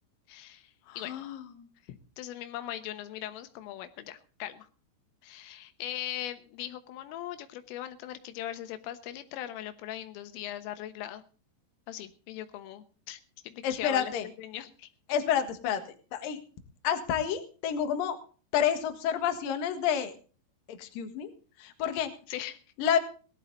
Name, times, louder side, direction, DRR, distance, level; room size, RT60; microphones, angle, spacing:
voice 1, 0.3-1.1 1.9-4.7 5.2-11.2 11.9-14.1 14.4-14.9 22.3-22.6, left 12 dB, 90° left, 10 dB, 3.8 m, -40 dB
voice 2, 0.9-1.7 13.6-14.3 15.1-16.4 16.8-18.2 18.5-20.1 20.7-21.3 21.6-22.1 22.8-23.0, left 9 dB, 60° left, 7 dB, 2.8 m, -29 dB
18.0 x 12.5 x 4.0 m, 0.38 s
omnidirectional pair, 5.6 m